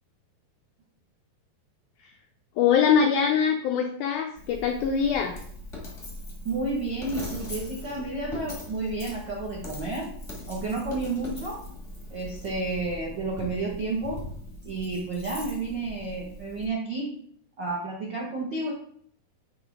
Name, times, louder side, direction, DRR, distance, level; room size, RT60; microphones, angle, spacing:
voice 1, 2.6-5.4, left 7 dB, 90° left, 4 dB, 1.7 m, -23 dB
Coin (dropping), 4.3-16.6, left 1 dB, 40° left, 0.4 m, -40 dB
voice 2, 6.4-10.1 10.5-11.6 12.1-14.2 14.6-17.1 17.6-18.7, right 3 dB, 75° right, -4 dB, 1.0 m, -31 dB
7.0 x 3.5 x 4.9 m, 0.63 s
omnidirectional pair, 4.2 m